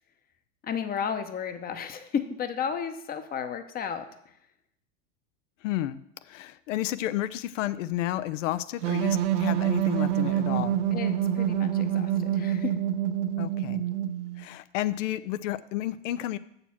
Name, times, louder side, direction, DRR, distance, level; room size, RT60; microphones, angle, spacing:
voice 1, 0.6-4.1 10.9-12.8, left 7 dB, 25° left, 9 dB, 0.8 m, -33 dB
voice 2, 5.6-6.0 6.3-10.8 13.4-13.8 14.4-16.4, left 14 dB, 70° left, 16 dB, 0.6 m, -31 dB
sound 1, 8.8-14.5, right 11 dB, 70° right, 0.9 m, -26 dB
7.1 x 6.8 x 5.8 m, 0.76 s
hypercardioid pair, 105°, 39 cm